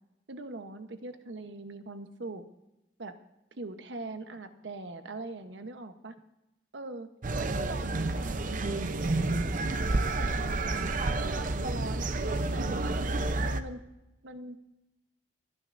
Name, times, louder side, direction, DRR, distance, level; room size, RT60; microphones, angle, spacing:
voice 1, 0.3-2.4 3.0-3.1 3.5-6.2 6.7-7.1 7.4-9.2 10.1-12.9 13.4-13.8 14.2-14.6, right 2 dB, 80° right, 8 dB, 1.0 m, -42 dB
sound 1, 7.2-13.6, right 2 dB, 45° right, 0.7 m, -30 dB
28.0 x 9.8 x 2.6 m, 0.96 s
head